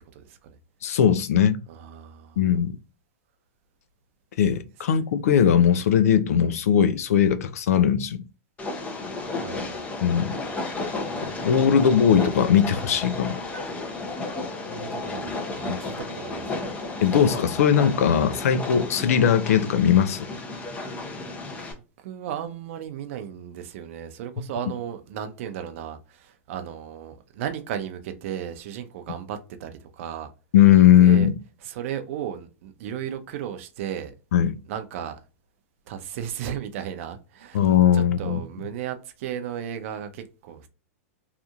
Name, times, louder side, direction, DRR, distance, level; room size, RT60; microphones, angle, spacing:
voice 1, 0.1-0.6 1.7-2.4 9.4-9.8 14.6-16.6 21.5-21.7 22.0-30.3 31.0-31.3 31.6-34.1 34.7-35.2 35.9-37.6 37.9-40.7, right 9 dB, 60° right, 0.6 m, -35 dB
voice 2, 0.8-1.6 2.4-2.7 4.4-8.2 10.0-10.3 11.2-13.4 15.7-15.8 17.0-20.3 30.5-31.3 34.3-34.6 37.5-38.4, left 9 dB, 75° left, 0.4 m, -19 dB
Train, 8.6-21.7, left 2 dB, 15° left, 0.6 m, -33 dB
2.8 x 2.5 x 2.4 m
hypercardioid pair, 125°, 8 cm